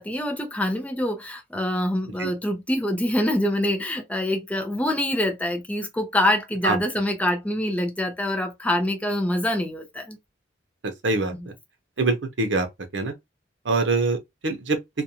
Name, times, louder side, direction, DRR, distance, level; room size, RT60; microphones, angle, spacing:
voice 1, 0.0-10.2 11.4-11.5, left 1 dB, 10° left, 0.5 m, -25 dB
voice 2, 12.0-12.7 12.9-13.1 13.7-14.2 14.4-14.8, right 3 dB, 70° right, 0.7 m, -23 dB
2.5 x 2.2 x 2.7 m
head